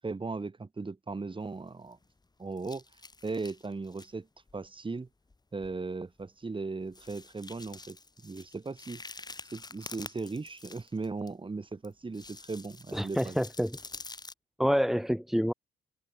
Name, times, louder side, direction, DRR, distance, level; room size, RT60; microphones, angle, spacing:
voice 1, 0.0-2.0 2.4-2.8 3.2-4.3 4.5-5.1 5.5-8.0 8.2-9.0 9.5-13.4, right 3 dB, 25° right, 6.0 m, -37 dB
sound 1, 1.5-2.2 2.6-4.1 4.5-4.7 5.3-5.4 5.6-5.8 6.2-6.3 6.9-11.3 11.8-14.3, left 3 dB, 20° left, 3.6 m, -48 dB
voice 2, 12.9-13.8 14.6-15.5, equal, ahead, 2.0 m, -27 dB
cardioid pair, 90°, 20 cm